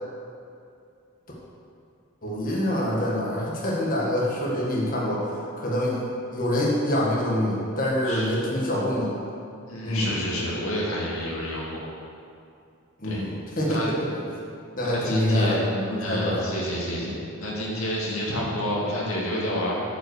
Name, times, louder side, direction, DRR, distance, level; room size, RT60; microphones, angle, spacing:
voice 1, 2.2-5.3 5.6-6.0 6.3-9.1 9.8-10.1 13.0-14.0 14.7-16.5 17.0-17.2, left 1 dB, 40° left, -5 dB, 1.7 m, -25 dB
voice 2, 9.7-11.8 13.0-13.2 13.7-13.9 14.8-15.6 16.0-19.8, equal, 70° left, -4 dB, 2.2 m, -29 dB
8.8 x 5.7 x 6.5 m, 2.5 s
head